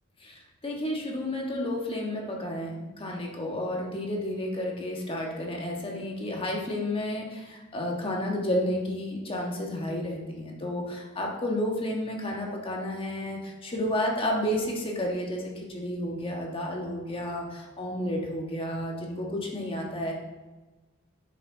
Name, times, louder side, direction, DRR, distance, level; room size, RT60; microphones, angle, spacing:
voice 1, 0.2-20.1, left 1 dB, 25° left, -1 dB, 1.4 m, -31 dB
10.0 x 5.9 x 3.8 m, 1.2 s
head